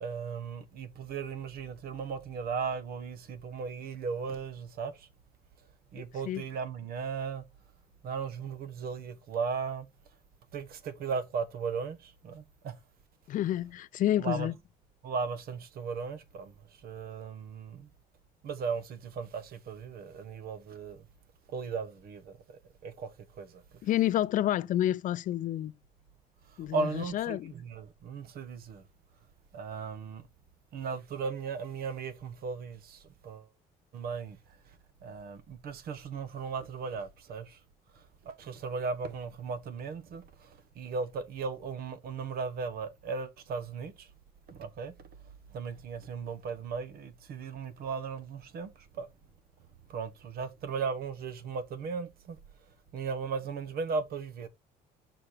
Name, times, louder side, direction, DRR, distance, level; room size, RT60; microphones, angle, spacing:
voice 1, 0.0-5.1 5.9-7.4 8.0-9.9 10.5-12.8 14.2-14.5 15.0-17.9 18.4-21.1 21.5-23.1 23.4-23.6 26.5-28.8 29.5-30.2 30.7-33.5 33.9-34.4 35.0-37.6 37.9-44.1 44.5-44.9 45.5-49.1 49.9-52.4 52.9-54.5, right 5 dB, 65° right, 1.2 m, -37 dB
voice 2, 6.0-6.4 13.3-14.5 23.8-25.7 26.6-27.5, left 13 dB, 50° left, 0.4 m, -29 dB
6.1 x 4.3 x 4.9 m
cardioid pair, 110°, 17 cm